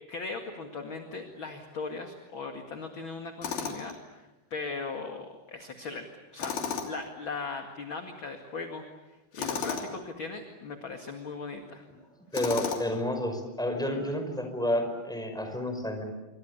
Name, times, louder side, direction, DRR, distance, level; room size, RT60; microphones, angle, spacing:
voice 1, 0.1-6.1 6.3-6.6 6.8-11.9, left 4 dB, 40° left, 5 dB, 2.2 m, -38 dB
Tools, 3.4-4.0 6.4-7.1 9.3-9.9 12.3-13.0, left 6 dB, 65° left, 4.7 m, -33 dB
voice 2, 12.3-16.0, left 1 dB, ahead, 5 dB, 4.9 m, -30 dB
28.0 x 24.5 x 8.3 m, 1.1 s
omnidirectional pair, 4.4 m